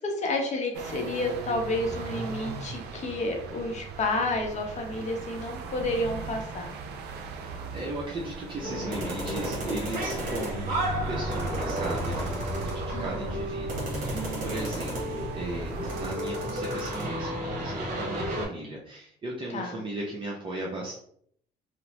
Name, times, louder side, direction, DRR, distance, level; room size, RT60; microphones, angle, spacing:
voice 1, 0.0-6.7 12.9-13.4 19.5-19.8, left 2 dB, 45° left, 2 dB, 0.7 m, -30 dB
sound 1, 0.7-16.1, right 4 dB, 80° right, 0.4 m, -39 dB
voice 2, 7.1-21.0, right 2 dB, 30° right, -4 dB, 0.6 m, -37 dB
sound 2, 8.6-18.5, right 1 dB, 55° right, 1.1 m, -32 dB
2.9 x 2.0 x 2.9 m, 0.66 s
cardioid pair, 110°, 17 cm